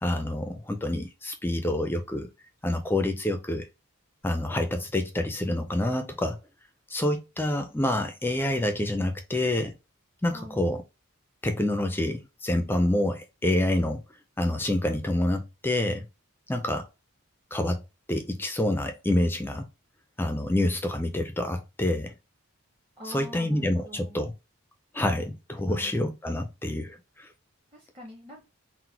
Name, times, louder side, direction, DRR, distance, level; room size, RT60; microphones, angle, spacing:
voice 1, 0.0-2.3 2.6-3.7 4.2-6.4 6.9-9.7 10.2-10.8 11.4-14.0 14.4-16.1 16.5-16.9 17.5-17.8 18.1-19.7 20.2-22.1 23.0-24.3 24.9-27.3, left 1 dB, 10° left, 0.4 m, -27 dB
voice 2, 10.3-10.7 23.0-24.2 25.7-25.9 27.7-28.5, equal, 25° right, 0.8 m, -45 dB
3.9 x 2.1 x 4.4 m
head